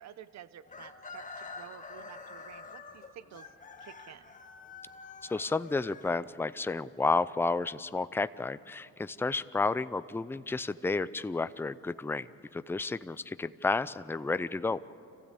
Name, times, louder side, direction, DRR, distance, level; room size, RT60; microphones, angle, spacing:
voice 1, 0.0-3.4 3.8-4.3, right 10 dB, 65° right, 15 dB, 0.8 m, -51 dB
Chicken rooster, 0.7-6.6, left 4 dB, 25° left, 1.5 m, -47 dB
voice 2, 5.2-12.3 12.5-14.9, left 3 dB, 10° left, 14 dB, 0.5 m, -31 dB
26.0 x 15.5 x 8.4 m, 2.8 s
cardioid pair, 90°, 30 cm